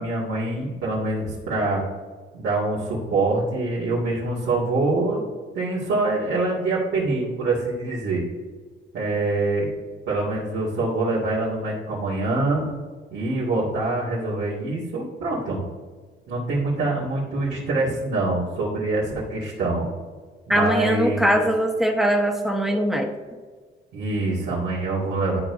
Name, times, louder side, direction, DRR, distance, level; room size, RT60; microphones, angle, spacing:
voice 1, 0.0-1.8 2.3-5.2 5.6-8.2 8.9-9.7 10.1-12.7 13.1-15.6 16.3-19.9 20.5-21.4 23.9-25.4, right 2 dB, 85° right, -9 dB, 2.2 m, -25 dB
voice 2, 20.5-23.1, equal, ahead, 2 dB, 1.2 m, -21 dB
12.0 x 4.7 x 2.7 m, 1.5 s
cardioid pair, 90°, 20 cm